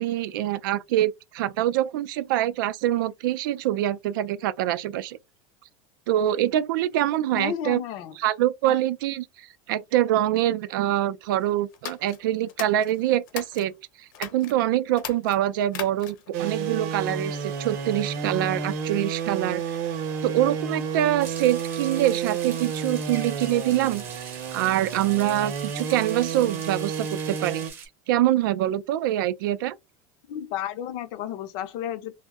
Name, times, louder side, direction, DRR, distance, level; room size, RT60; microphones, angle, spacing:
voice 1, 0.0-5.2 6.1-7.8 8.2-13.7 14.0-19.6 20.2-24.0 24.5-27.7 28.1-29.7, right 13 dB, 85° right, 0.4 m, -25 dB
voice 2, 7.3-8.2 8.6-8.7 30.3-32.1, left 10 dB, 45° left, 0.5 m, -32 dB
sound 1, 11.7-13.7 14.1-14.5 14.9-16.3, left 9 dB, 75° left, 0.8 m, -38 dB
sound 2, 16.3-27.7, right 6 dB, 55° right, 0.7 m, -31 dB
sound 3, 21.2-27.9, right 6 dB, 20° right, 0.6 m, -42 dB
2.6 x 2.0 x 3.5 m
supercardioid pair, 180°, 11 cm